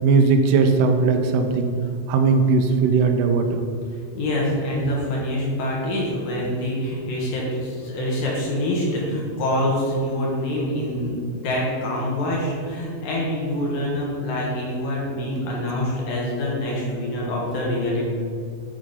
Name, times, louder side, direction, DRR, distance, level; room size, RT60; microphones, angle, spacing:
voice 1, 0.0-1.8 2.1-3.6, right 4 dB, 85° right, 5 dB, 2.6 m, -18 dB
voice 2, 4.1-18.1, left 1 dB, 65° left, -4 dB, 2.7 m, -25 dB
10.5 x 3.6 x 5.5 m, 2.3 s
omnidirectional pair, 4.8 m